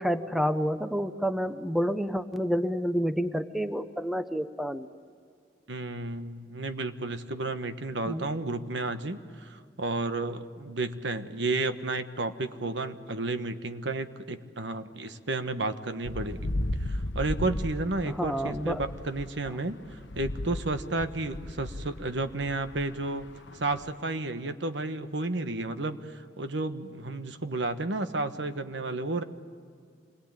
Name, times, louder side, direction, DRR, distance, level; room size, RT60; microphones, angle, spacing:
voice 1, 0.0-4.9 8.0-8.3 18.0-18.8, equal, ahead, 10 dB, 0.7 m, -29 dB
voice 2, 5.7-16.5 16.8-23.3 23.5-29.2, right 2 dB, 75° right, 9 dB, 1.3 m, -32 dB
sound 1, 16.0-24.0, left 1 dB, 85° left, 1.0 m, -36 dB
27.0 x 21.5 x 8.9 m, 2.2 s
head